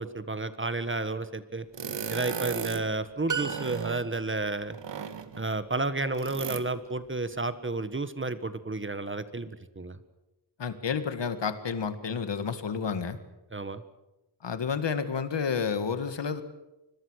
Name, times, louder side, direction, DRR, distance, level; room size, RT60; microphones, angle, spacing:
voice 1, 0.0-1.7 2.1-4.8 5.4-10.0 13.5-13.8, right 3 dB, 30° right, 12 dB, 1.5 m, -31 dB
sound 1, 1.7-2.9 3.3-4.1 4.7-5.5 6.1-6.7, right 6 dB, 85° right, 1.6 m, -36 dB
sound 2, 3.3-4.4, right 6 dB, 45° right, 2.3 m, -34 dB
voice 2, 10.6-13.2 14.4-16.4, left 6 dB, 80° left, 10 dB, 2.0 m, -30 dB
25.0 x 22.0 x 6.5 m, 1.0 s
wide cardioid pair, 105°, 42 cm